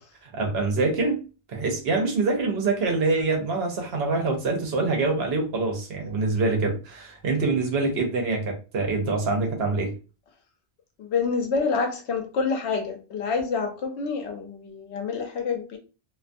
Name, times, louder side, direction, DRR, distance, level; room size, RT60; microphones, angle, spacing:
voice 1, 0.2-1.2 1.5-9.9, right 3 dB, 70° right, 0.9 m, -25 dB
voice 2, 11.0-15.8, left 5 dB, 75° left, 0.9 m, -27 dB
2.5 x 2.3 x 2.5 m
omnidirectional pair, 1.1 m